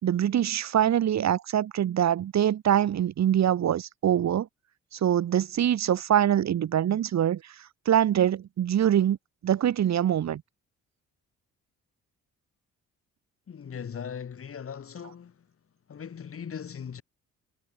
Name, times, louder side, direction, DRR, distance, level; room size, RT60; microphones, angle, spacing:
voice 1, 0.0-4.5 4.9-7.4 7.9-9.2 9.4-10.4, right 10 dB, 65° right, 2.6 m, -24 dB
voice 2, 13.5-15.4 15.9-17.0, left 7 dB, 50° left, 3.8 m, -39 dB
cardioid pair, 90°, 30 cm